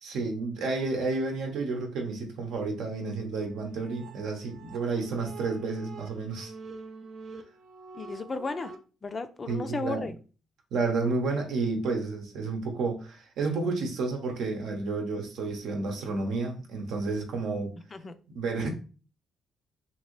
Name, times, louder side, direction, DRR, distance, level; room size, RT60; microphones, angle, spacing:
voice 1, 0.0-6.5 9.5-10.1 10.7-17.7 18.3-18.7, right 3 dB, 80° right, 2 dB, 0.8 m, -31 dB
sound 1, 3.4-8.8, right 4 dB, 60° right, 0.4 m, -46 dB
voice 2, 7.9-8.7 9.0-10.1 17.9-18.1, left 3 dB, 30° left, 10 dB, 0.4 m, -34 dB
2.9 x 2.6 x 3.0 m, 0.36 s
cardioid pair, 90°, 0 cm